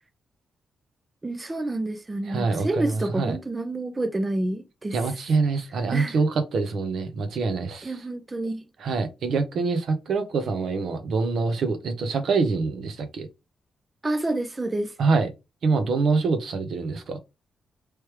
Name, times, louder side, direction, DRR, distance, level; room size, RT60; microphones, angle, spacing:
voice 1, 1.2-5.0 5.9-6.2 7.8-8.6 14.0-14.9, right 2 dB, 20° right, 0.4 m, -28 dB
voice 2, 2.3-3.4 4.9-8.0 8.8-13.3 15.0-15.3 15.6-17.2, right 4 dB, 65° right, 0.8 m, -25 dB
3.2 x 3.2 x 3.2 m
cardioid pair, 135°, 0 cm